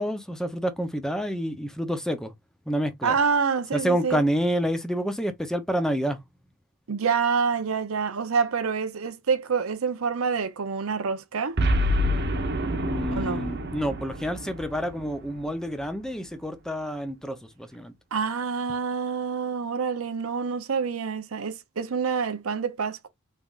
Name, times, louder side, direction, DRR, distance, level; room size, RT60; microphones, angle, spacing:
voice 1, 0.0-2.3 2.7-3.2 3.7-6.2 12.8-17.9, equal, 5° left, 0.6 m, -28 dB
voice 2, 3.0-4.2 6.9-11.6 13.1-13.4 18.1-23.1, right 5 dB, 70° right, 0.6 m, -27 dB
Boom, 11.6-16.0, equal, 55° right, 1.0 m, -27 dB
3.5 x 3.3 x 2.4 m
head